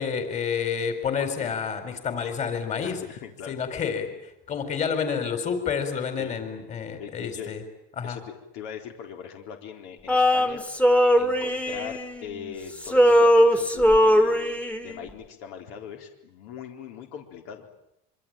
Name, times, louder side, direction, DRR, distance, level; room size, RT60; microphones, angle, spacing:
voice 1, 0.0-3.0 3.5-4.1 4.5-7.6 8.0-8.2, left 6 dB, 35° left, 8 dB, 4.4 m, -29 dB
voice 2, 2.8-3.6 6.2-6.4 7.0-7.6 8.0-10.7 11.2-17.7, left 8 dB, 75° left, 3 dB, 4.0 m, -40 dB
Male singing, 10.1-12.5 12.8-15.0, equal, 5° left, 1.8 m, -20 dB
25.5 x 24.5 x 9.0 m, 0.83 s
cardioid pair, 140°, 21 cm